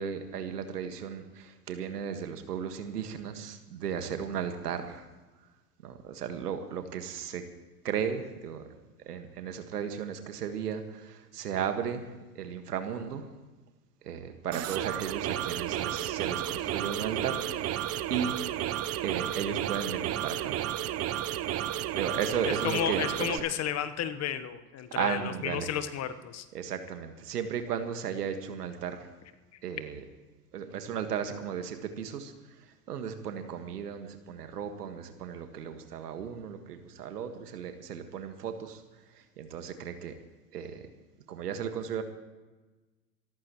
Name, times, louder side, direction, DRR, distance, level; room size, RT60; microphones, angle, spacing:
voice 1, 0.0-5.0 5.8-7.4 7.8-8.6 9.1-13.2 14.0-17.8 18.1-18.4 19.0-20.5 21.6-23.4 24.9-25.7 26.5-29.1 29.6-30.0 30.5-32.3 32.9-38.8 39.4-40.1 40.5-40.8 41.3-42.0, right 7 dB, 80° right, 7 dB, 1.8 m, -35 dB
sound 1, 14.5-23.4, right 12 dB, 30° right, 0.8 m, -32 dB
voice 2, 22.5-26.5, left 9 dB, 35° left, 11 dB, 1.2 m, -32 dB
26.5 x 14.0 x 3.1 m, 1.2 s
hypercardioid pair, 90°, 47 cm